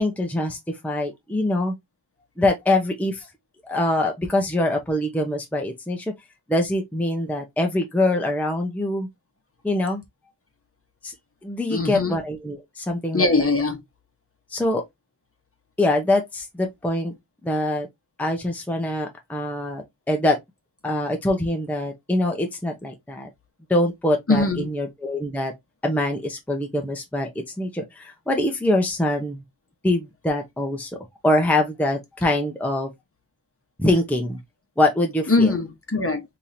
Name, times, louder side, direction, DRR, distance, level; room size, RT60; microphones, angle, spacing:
voice 1, 0.0-1.7 2.4-3.3 3.6-6.1 6.5-9.1 9.6-10.0 11.0-11.1 11.4-13.3 14.5-14.8 15.8-17.1 17.4-17.9 18.2-20.4 20.8-23.3 23.7-25.5 25.8-29.4 29.8-30.9 31.2-32.9 33.8-34.4 34.8-35.5, left 1 dB, 5° left, 0.7 m, -24 dB
voice 2, 11.7-12.2 13.1-13.8 24.3-24.7 35.3-36.2, left 3 dB, 30° left, 0.9 m, -21 dB
3.6 x 2.9 x 2.6 m
wide cardioid pair, 70°, 44 cm